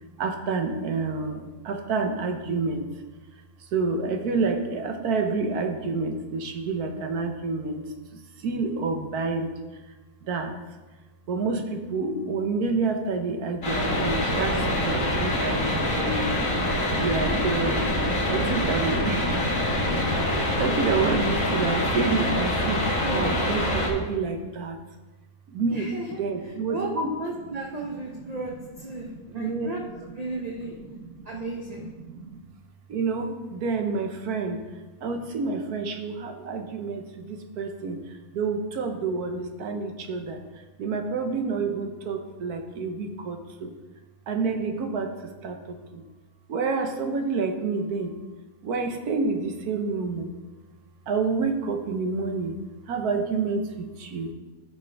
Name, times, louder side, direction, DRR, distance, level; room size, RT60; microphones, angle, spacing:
voice 1, 0.2-2.9 3.6-9.5 10.2-10.5 11.3-16.4 17.0-17.9 18.3-19.3 20.1-24.8 25.5-25.9 26.2-27.1 27.9-28.3 28.9-29.7 30.0-30.1 30.6-31.3 31.8-32.4 32.9-34.6 35.0-43.7 44.3-46.0 46.5-48.1 48.6-50.3 51.1-52.6 52.9-54.3, right 4 dB, 70° right, 5 dB, 1.3 m, -29 dB
sound 1, 13.6-23.9, left 1 dB, 55° left, 2.1 m, -25 dB
voice 2, 23.0-23.4 25.7-26.2 26.7-29.8 30.2-30.7 31.2-31.9, right 2 dB, 35° right, -1 dB, 0.7 m, -34 dB
13.0 x 6.0 x 3.4 m, 1.2 s
omnidirectional pair, 1.7 m